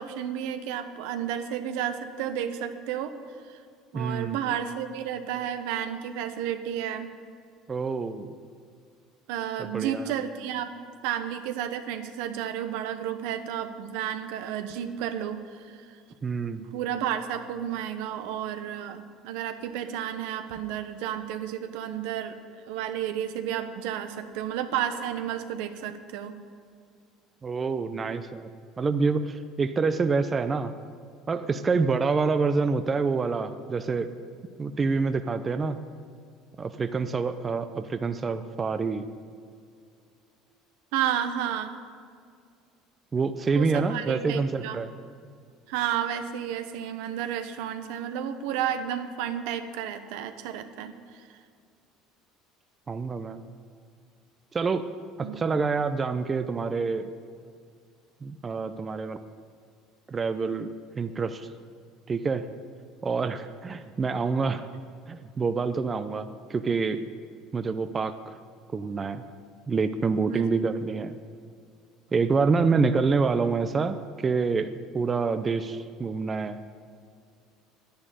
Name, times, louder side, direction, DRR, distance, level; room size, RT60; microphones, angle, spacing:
voice 1, 0.0-3.1 3.5-3.6 3.9-7.1 9.3-10.7 11.0-15.9 16.6-22.4 22.7-26.4 40.9-41.8 43.5-44.8 45.7-51.3 55.2-55.3 70.3-70.5, right 10 dB, 80° right, 9 dB, 1.0 m, -32 dB
voice 2, 3.9-4.4 7.7-8.3 9.6-10.1 16.2-16.7 27.4-28.5 28.8-30.7 31.3-34.1 34.6-35.8 36.6-39.0 43.1-44.9 52.9-53.4 54.5-54.9 55.2-57.1 58.2-59.2 60.1-61.5 62.1-62.5 63.0-64.7 65.1-67.0 67.5-68.3 68.7-69.2 69.7-71.2 72.1-76.6, right 4 dB, 25° right, 10 dB, 0.6 m, -27 dB
10.5 x 10.0 x 9.2 m, 2.2 s
cardioid pair, 125°, 0 cm